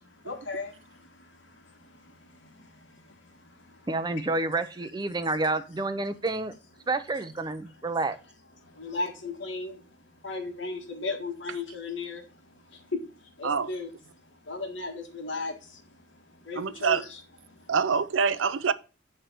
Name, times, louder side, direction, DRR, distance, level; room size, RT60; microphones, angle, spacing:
voice 1, 0.3-0.7 8.8-9.8 10.2-12.2 13.4-13.9 14.5-15.5 16.5-17.2, left 3 dB, 70° left, 1.7 m, -34 dB
voice 2, 3.9-6.5 6.9-8.2, right 2 dB, 20° right, 0.6 m, -29 dB
voice 3, 16.5-17.0 17.7-18.7, right 5 dB, 85° right, 0.5 m, -25 dB
8.8 x 3.4 x 6.7 m
head